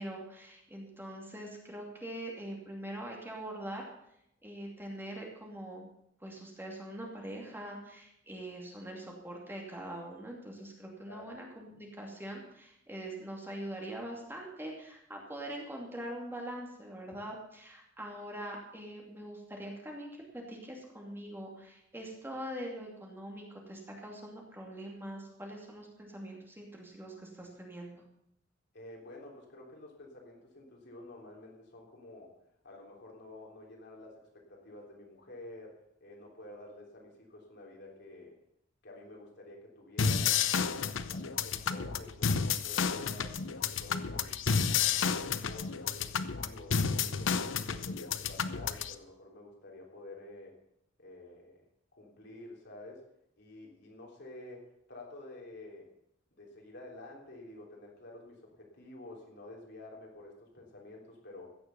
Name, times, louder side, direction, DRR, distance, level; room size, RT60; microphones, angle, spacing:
voice 1, 0.0-3.9 4.4-5.9 6.2-20.2 20.5-28.0, right 1 dB, 10° right, -1 dB, 2.5 m, -43 dB
voice 2, 28.7-32.4 32.6-38.4 38.8-44.4 44.9-50.5 51.0-51.6 51.9-53.1 53.4-55.9 56.3-61.5, left 2 dB, 60° left, -1 dB, 3.4 m, -50 dB
sound 1, 40.0-48.9, left 6 dB, 90° left, 0.7 m, -31 dB
16.0 x 6.9 x 6.9 m, 0.76 s
head